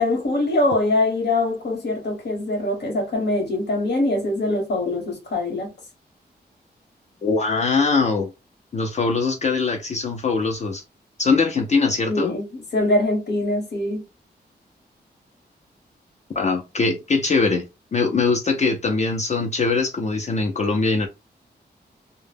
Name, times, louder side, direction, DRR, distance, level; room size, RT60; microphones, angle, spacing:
voice 1, 0.0-5.7 12.1-14.0, left 2 dB, 80° left, 1.0 m, -23 dB
voice 2, 7.2-8.3 8.7-10.8 11.2-12.3 16.3-17.6 17.9-21.1, left 4 dB, 40° left, 0.4 m, -22 dB
2.0 x 2.0 x 3.3 m
wide cardioid pair, 175°, 17 cm